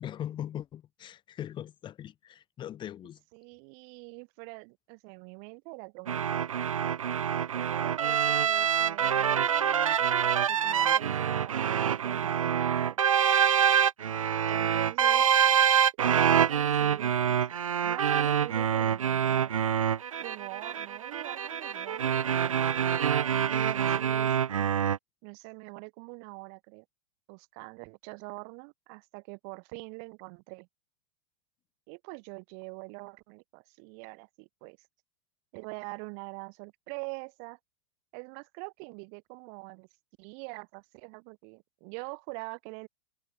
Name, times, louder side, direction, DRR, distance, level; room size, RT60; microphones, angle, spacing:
voice 1, 0.0-3.2, left 11 dB, 30° left, 3.3 m, -40 dB
voice 2, 3.3-6.2 6.5-6.7 7.6-9.4 10.4-13.0 14.5-15.3 16.0-17.4 17.8-19.6 20.2-22.6 23.5-24.4 25.2-26.8 27.3-30.7 31.9-34.8 35.5-37.6 38.1-39.9 40.2-42.9, right 40 dB or more, 50° right, 2.9 m, -44 dB
sound 1, 6.1-25.0, right 8 dB, 90° right, 0.6 m, -26 dB
hypercardioid pair, 110°, 17 cm